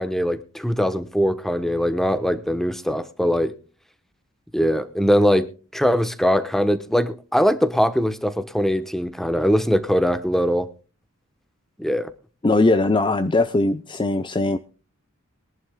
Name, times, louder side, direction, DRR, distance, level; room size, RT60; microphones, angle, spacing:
voice 1, 0.0-3.5 4.5-5.5 5.7-10.7 11.8-12.1, equal, ahead, 1.0 m, -21 dB
voice 2, 12.4-14.6, left 2 dB, 20° left, 0.6 m, -20 dB
22.5 x 11.0 x 2.2 m
head